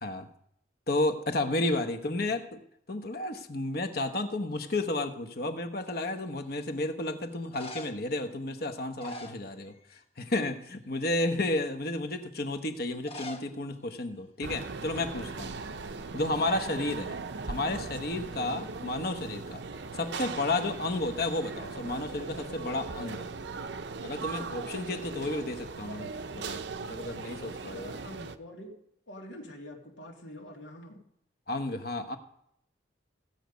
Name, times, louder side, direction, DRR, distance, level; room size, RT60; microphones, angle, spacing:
voice 1, 0.9-2.6 2.9-9.8 10.2-15.6 16.1-17.1 17.5-19.6 19.9-23.3 24.0-27.9 31.5-32.2, left 2 dB, 55° left, 7 dB, 1.2 m, -32 dB
sound 1, 5.9-6.4 7.3-8.1 8.8-10.0 10.3-10.7 11.2-11.3 12.9-13.5 13.8-13.9 14.1-14.2 14.9-15.1 15.4-16.6 20.6-21.2, left 1 dB, 30° left, 1.2 m, -45 dB
sound 2, 14.4-28.4, right 4 dB, 70° right, 0.7 m, -39 dB
voice 2, 27.4-28.7 29.1-31.0, left 1 dB, 90° left, -2 dB, 2.5 m, -46 dB
16.0 x 8.2 x 5.2 m, 0.73 s
head